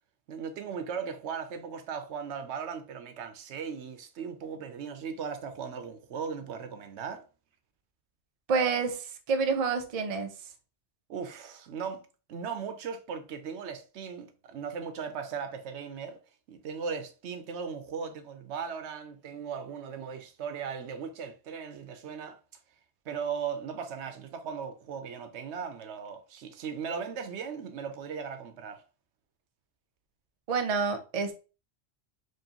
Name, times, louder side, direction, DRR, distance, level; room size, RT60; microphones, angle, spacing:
voice 1, 0.3-7.3 11.1-12.0 12.3-16.2 16.5-22.4 23.1-28.8, right 6 dB, 80° right, 0.9 m, -37 dB
voice 2, 8.5-10.3 30.5-31.3, right 5 dB, 45° right, 0.5 m, -28 dB
4.6 x 2.6 x 2.9 m
omnidirectional pair, 1.2 m